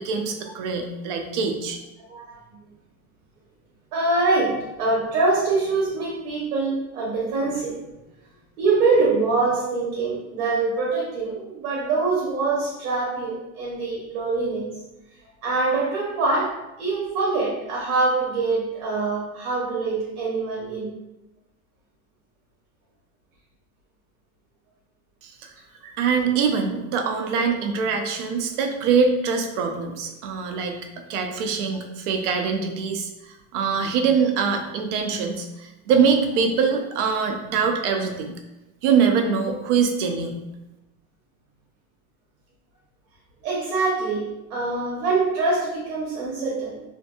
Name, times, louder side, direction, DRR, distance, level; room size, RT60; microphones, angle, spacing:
voice 1, 0.0-1.8 25.2-25.5 26.0-30.8 31.1-38.3 38.8-40.4, right 6 dB, 55° right, 4 dB, 0.5 m, -23 dB
voice 2, 3.9-7.8 8.6-14.7 15.4-20.9 25.8-25.9 43.4-46.8, right 3 dB, 75° right, -4 dB, 0.9 m, -24 dB
2.6 x 2.6 x 2.2 m, 0.95 s
supercardioid pair, 155°, 43 cm